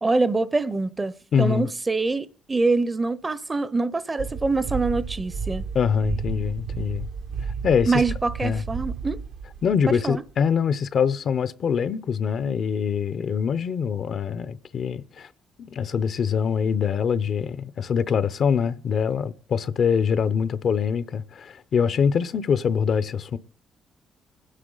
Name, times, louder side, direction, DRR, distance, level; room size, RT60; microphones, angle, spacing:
voice 1, 0.0-5.7 7.9-9.2 9.9-10.2, right 3 dB, 25° right, 0.6 m, -25 dB
voice 2, 1.3-1.7 5.7-7.1 7.6-7.9 8.4-8.6 9.6-15.3 15.6-23.4, left 7 dB, 60° left, 0.6 m, -24 dB
sound 1, 4.2-10.3, right 5 dB, 75° right, 0.9 m, -32 dB
26.0 x 9.9 x 3.9 m
cardioid pair, 90°, 0 cm